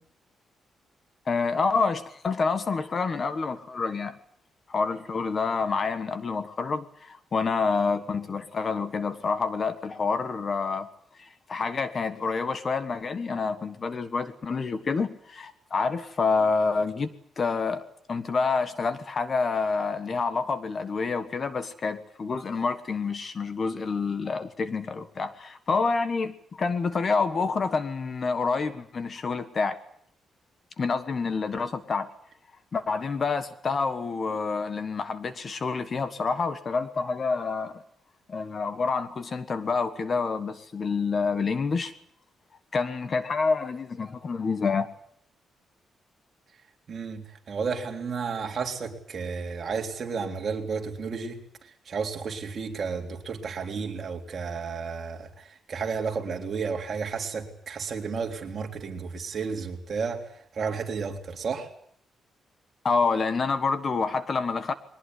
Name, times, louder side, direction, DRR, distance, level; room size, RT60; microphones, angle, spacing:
voice 1, 1.3-4.2 4.7-10.9 11.2-17.1 17.4-17.8 18.1-29.8 30.8-32.1 32.7-37.8 38.3-41.9 42.7-44.9 62.8-64.7, left 4 dB, 35° left, 1.4 m, -28 dB
voice 2, 46.9-51.4 51.9-55.3 55.7-60.3 60.6-61.7, right 5 dB, 40° right, 3.7 m, -32 dB
22.0 x 19.5 x 9.6 m
cardioid pair, 150°, 0 cm